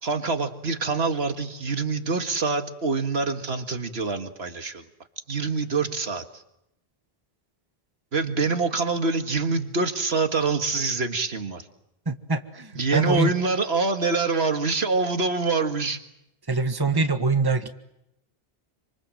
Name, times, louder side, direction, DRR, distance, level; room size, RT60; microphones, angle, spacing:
voice 1, 0.0-4.8 5.3-6.4 8.1-11.7 12.7-16.0, right 4 dB, 80° right, 7 dB, 2.1 m, -25 dB
voice 2, 12.0-13.3 16.5-17.7, right 3 dB, 20° right, 7 dB, 1.6 m, -24 dB
27.5 x 26.0 x 7.8 m, 0.83 s
omnidirectional pair, 1.1 m